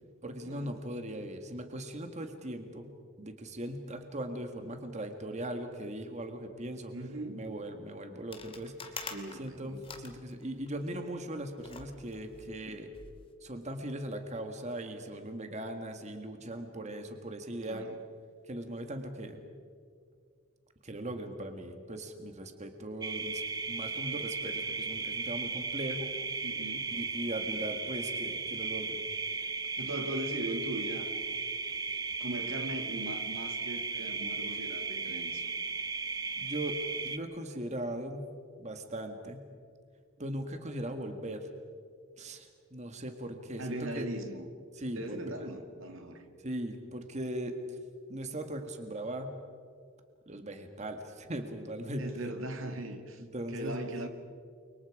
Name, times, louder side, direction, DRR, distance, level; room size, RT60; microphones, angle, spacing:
voice 1, 0.2-2.9 3.2-6.9 7.3-12.9 13.4-17.9 18.5-19.4 20.8-26.2 26.9-29.0 36.4-38.3 38.6-39.4 40.2-41.5 42.2-44.1 44.8-45.3 46.4-47.8 48.1-49.3 50.3-52.0 53.2-53.8, right 1 dB, 35° right, 5 dB, 1.8 m, -39 dB
voice 2, 6.9-7.4 9.0-9.8 12.7-12.8 17.7-18.0 26.4-26.9 29.8-31.1 32.2-35.5 43.6-44.5 44.9-46.3 52.0-53.2 53.5-54.1, right 1 dB, 80° right, 6 dB, 2.2 m, -39 dB
sound 1, 8.3-10.9 11.6-13.3, left 4 dB, 30° left, 2.2 m, -46 dB
sound 2, 23.0-37.2, right 4 dB, 20° right, 0.8 m, -36 dB
30.0 x 24.5 x 4.9 m, 2.1 s
head